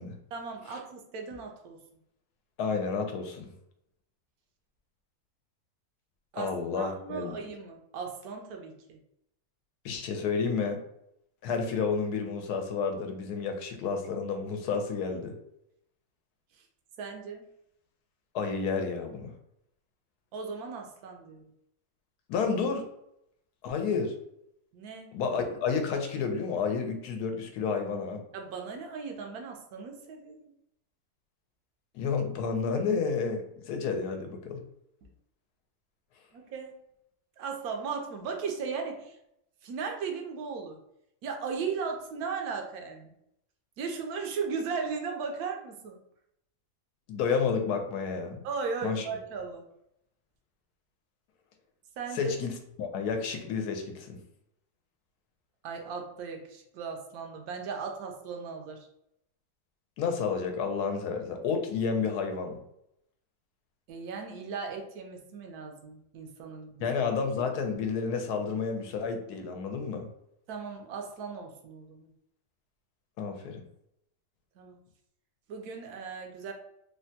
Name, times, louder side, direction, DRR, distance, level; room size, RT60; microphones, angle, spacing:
voice 1, 0.3-1.8 6.3-6.5 6.8-9.0 17.0-17.5 20.3-21.4 24.7-25.1 28.3-30.4 36.3-36.7 37.4-39.2 39.6-40.8 41.2-43.1 43.8-46.0 48.4-49.7 52.0-52.3 55.6-58.9 63.9-66.9 70.5-72.1 74.6-74.8 75.5-76.5, right 5 dB, 80° right, 3 dB, 1.1 m, -37 dB
voice 2, 2.6-3.5 6.4-7.4 9.8-10.8 11.4-15.4 18.3-19.3 22.3-22.8 23.6-24.1 25.1-28.2 31.9-34.6 47.1-48.5 48.8-49.1 52.1-54.2 60.0-62.6 66.8-70.1 73.2-73.6, left 5 dB, 90° left, 5 dB, 1.1 m, -30 dB
3.3 x 2.1 x 2.7 m, 0.77 s
omnidirectional pair, 1.6 m